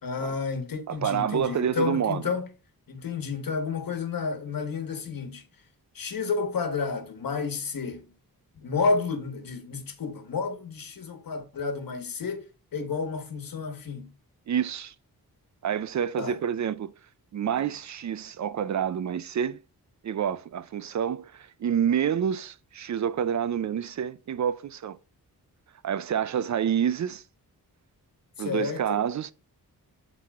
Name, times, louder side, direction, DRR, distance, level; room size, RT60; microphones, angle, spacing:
voice 1, 0.0-2.5 2.9-5.4 5.9-8.1 8.5-14.1 16.2-16.4 28.4-29.0, left 4 dB, 60° left, 1.4 m, -31 dB
voice 2, 0.9-2.2 14.5-14.9 15.6-16.9 17.3-19.6 20.0-25.0 25.8-27.2 28.4-29.3, right 8 dB, 50° right, 0.4 m, -28 dB
12.0 x 4.1 x 2.4 m
wide cardioid pair, 130°, 38 cm